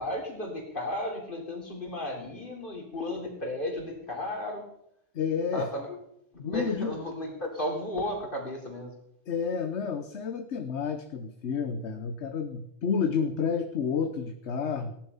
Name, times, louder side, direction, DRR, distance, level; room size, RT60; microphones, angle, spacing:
voice 1, 0.0-4.6 5.5-5.9 6.3-8.9, left 1 dB, 45° left, 1 dB, 3.9 m, -34 dB
voice 2, 5.1-5.7 6.4-6.9 9.3-14.9, left 6 dB, 65° left, 7 dB, 1.3 m, -30 dB
17.5 x 11.0 x 5.6 m, 0.76 s
omnidirectional pair, 1.2 m